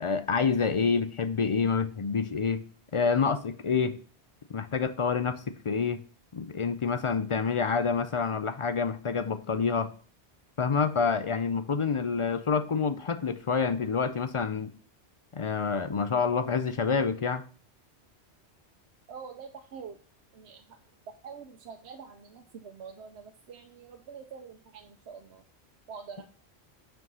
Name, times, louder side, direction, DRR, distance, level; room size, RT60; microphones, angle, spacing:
voice 1, 0.0-2.6 2.9-4.0 4.5-6.0 6.3-9.9 10.6-14.7 15.3-17.4, left 5 dB, 45° left, 0.4 m, -27 dB
voice 2, 19.1-20.0 20.3-20.6 21.2-25.4 25.9-26.2, right 6 dB, 75° right, 1.0 m, -45 dB
6.1 x 4.6 x 5.4 m
omnidirectional pair, 1.1 m